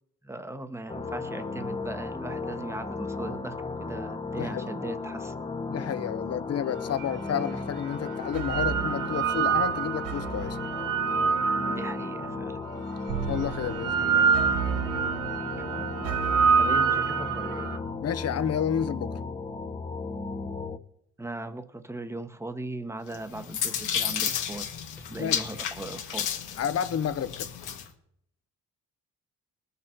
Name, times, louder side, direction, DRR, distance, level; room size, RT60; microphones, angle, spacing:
voice 1, 0.2-5.3 11.7-12.6 15.4-16.2 16.6-17.7 21.2-24.7 25.0-26.3, right 2 dB, 10° right, 1.1 m, -39 dB
sound 1, 0.9-20.8, left 3 dB, 20° left, 0.9 m, -35 dB
voice 2, 4.3-4.8 5.7-10.6 13.3-14.3 18.0-19.2 25.2-25.5 26.6-27.5, left 8 dB, 55° left, 0.9 m, -31 dB
sound 2, 7.0-7.1 8.1-12.3 13.1-17.8, right 6 dB, 90° right, 1.0 m, -26 dB
sound 3, 23.1-27.9, left 8 dB, 85° left, 1.6 m, -32 dB
20.5 x 7.0 x 4.5 m
cardioid pair, 90°, 30 cm